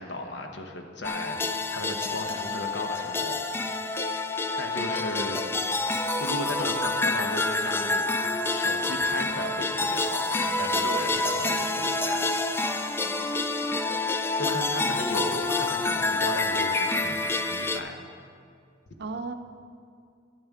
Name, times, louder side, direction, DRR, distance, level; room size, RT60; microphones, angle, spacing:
voice 1, 0.0-1.4 1.7-3.7 4.6-5.4 6.2-8.1 8.5-12.3 14.4-18.0, left 1 dB, 70° left, 4 dB, 0.9 m, -35 dB
sound 1, 1.0-17.8, left 2 dB, 15° left, 0.3 m, -27 dB
voice 2, 13.0-13.7 19.0-19.3, right 3 dB, 65° right, 7 dB, 0.6 m, -38 dB
11.5 x 8.9 x 3.6 m, 2.3 s
head